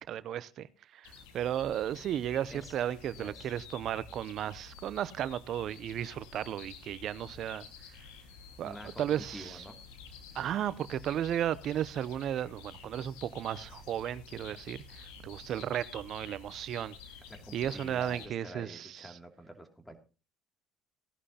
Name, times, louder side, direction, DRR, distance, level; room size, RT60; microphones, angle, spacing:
voice 1, 0.1-0.7 0.9-7.7 8.6-9.6 10.3-16.9 17.5-19.1, right 10 dB, 60° right, 0.6 m, -34 dB
sound 1, 1.0-18.3, left 5 dB, 85° left, 1.7 m, -50 dB
voice 2, 3.1-3.5 8.6-9.8 17.4-20.0, equal, 10° left, 2.5 m, -47 dB
17.5 x 11.0 x 2.8 m
supercardioid pair, 75°, 0 cm